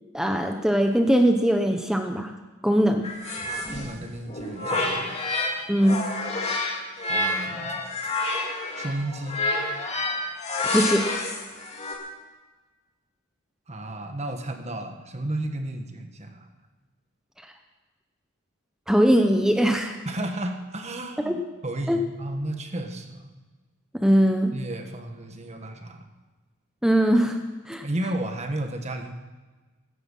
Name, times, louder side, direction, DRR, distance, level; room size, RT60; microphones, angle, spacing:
voice 1, 0.1-2.3 2.6-3.1 5.7-6.0 10.7-11.0 18.9-20.0 21.2-21.4 21.9-22.0 23.9-24.5 26.8-27.4 27.7-27.8, equal, 5° right, 4 dB, 0.9 m, -21 dB
sound 1, 3.0-5.6 5.8-12.0, left 2 dB, 30° left, 2.5 m, -28 dB
voice 2, 3.7-5.2 7.1-7.8 8.8-9.4 13.7-16.5 20.0-23.3 24.5-26.1 27.8-29.1, right 1 dB, 30° right, 5 dB, 1.6 m, -33 dB
16.0 x 13.5 x 5.6 m, 1.3 s
head